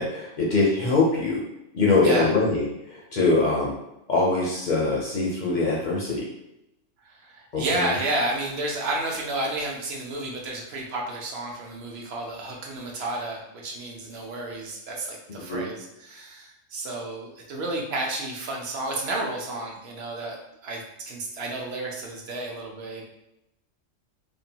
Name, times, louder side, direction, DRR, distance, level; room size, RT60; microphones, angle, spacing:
voice 1, 0.0-1.4 1.7-3.7 4.1-6.3 7.5-7.9 15.5-15.6, left 3 dB, 60° left, -4 dB, 0.5 m, -23 dB
voice 2, 7.0-23.0, right 2 dB, 65° right, 0 dB, 0.7 m, -31 dB
2.7 x 2.1 x 2.7 m, 0.85 s
omnidirectional pair, 1.3 m